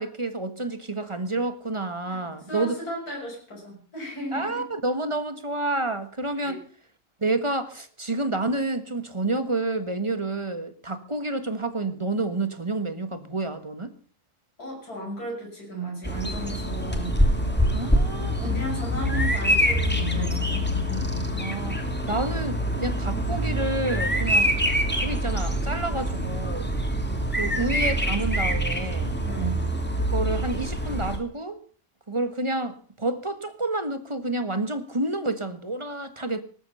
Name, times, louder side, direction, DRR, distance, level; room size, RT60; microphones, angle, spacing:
voice 1, 0.0-2.7 4.3-6.6 7.2-13.9 17.7-18.6 21.4-21.8 22.1-26.7 27.4-29.1 30.1-31.6 32.1-36.4, right 2 dB, 20° right, 1.5 m, -29 dB
voice 2, 2.1-4.7 6.3-6.6 14.6-17.2 18.4-20.7 29.2-29.6, right 1 dB, 80° left, 7.1 m, -35 dB
Bird vocalization bird call bird song, 16.0-31.2, equal, 5° left, 2.5 m, -25 dB
19.0 x 13.5 x 5.6 m
omnidirectional pair, 1.6 m